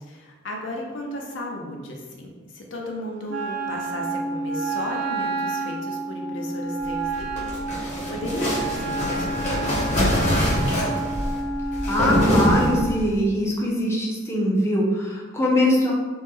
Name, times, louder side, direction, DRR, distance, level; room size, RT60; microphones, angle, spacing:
voice 1, 0.0-10.8, left 1 dB, 65° left, 1 dB, 0.5 m, -35 dB
Wind instrument woodwind instrument, 3.3-12.9, right 3 dB, 60° right, 0.5 m, -29 dB
sound 1, 7.0-13.1, equal, 35° left, 0.9 m, -24 dB
voice 2, 11.9-15.9, left 1 dB, 15° left, -3 dB, 0.4 m, -22 dB
3.0 x 2.1 x 3.4 m, 1.4 s
head